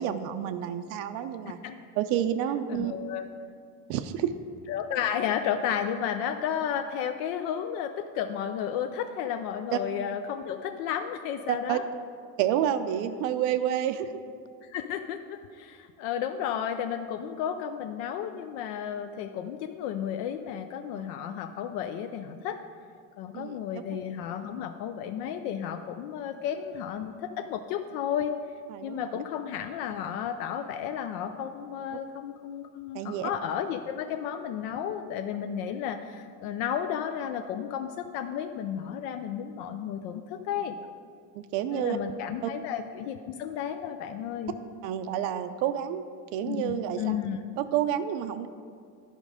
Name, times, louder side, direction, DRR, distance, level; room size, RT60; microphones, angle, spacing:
voice 1, 0.0-1.6 2.0-2.9 3.9-4.3 9.7-9.8 11.5-11.8 12.4-14.1 20.9-21.0 23.3-23.6 28.7-29.2 32.9-33.3 41.4-42.0 42.4-42.5 44.8-46.0 46.3-47.2 47.6-48.5, right 10 dB, 85° right, 8 dB, 0.5 m, -29 dB
voice 2, 2.7-3.3 4.7-11.8 14.6-22.6 23.2-28.4 28.8-40.9 41.7-44.5 46.5-47.4, left 9 dB, 75° left, 7 dB, 0.5 m, -33 dB
11.0 x 5.2 x 4.9 m, 2.2 s
cardioid pair, 170°, 35 cm